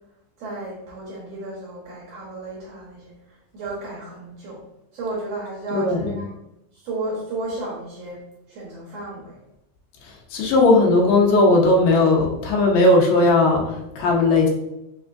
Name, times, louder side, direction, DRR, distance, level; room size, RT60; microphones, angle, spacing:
voice 1, 0.4-3.1 3.5-4.6 4.9-6.3 6.8-8.2 8.5-9.4, right 2 dB, 65° right, -5 dB, 1.8 m, -33 dB
voice 2, 5.7-6.2 10.3-14.5, left 2 dB, 80° left, -1 dB, 2.4 m, -17 dB
5.4 x 3.4 x 2.4 m, 0.87 s
omnidirectional pair, 3.8 m